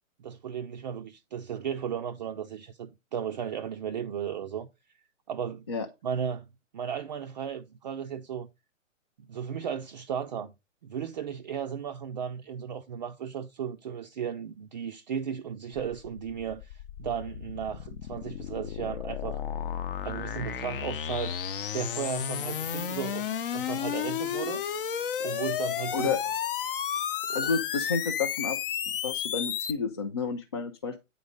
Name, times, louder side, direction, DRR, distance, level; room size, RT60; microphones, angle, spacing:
voice 1, 0.2-4.7 5.3-5.7 6.0-6.5 6.7-8.5 9.2-10.5 10.8-19.4 20.0-21.4 21.7-23.2 23.5-24.6 25.2-26.1 27.3-27.5, right 8 dB, 35° right, 0.5 m, -35 dB
sound 1, 15.8-29.7, left 9 dB, 40° left, 0.8 m, -33 dB
voice 2, 25.9-26.3 27.3-28.6 29.0-31.0, left 5 dB, 20° left, 0.4 m, -30 dB
9.1 x 4.0 x 5.0 m
hypercardioid pair, 135°, 40 cm